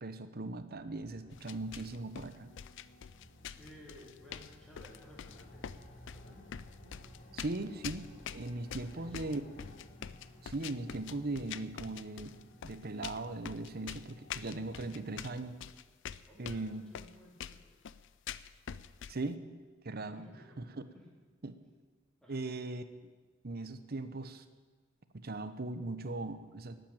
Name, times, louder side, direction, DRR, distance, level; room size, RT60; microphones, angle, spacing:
voice 1, 0.0-2.5 7.3-8.0 8.3-9.4 10.5-12.3 12.6-15.6 16.4-16.8 19.1-19.4 19.8-20.2 20.6-20.7 21.4-21.6 22.3-23.1 23.4-24.4 25.2-26.8, right 2 dB, 50° right, 11 dB, 0.9 m, -39 dB
sound 1, 0.8-15.4, left 1 dB, 45° left, 2.9 m, -56 dB
sound 2, 1.3-19.3, left 8 dB, 60° left, 0.4 m, -45 dB
voice 2, 3.5-6.5 8.7-9.5 10.0-10.5 16.3-17.9 20.0-20.6 20.9-21.1 22.2-22.5, left 1 dB, 5° left, -4 dB, 3.7 m, -57 dB
12.5 x 9.1 x 8.9 m, 1.4 s
head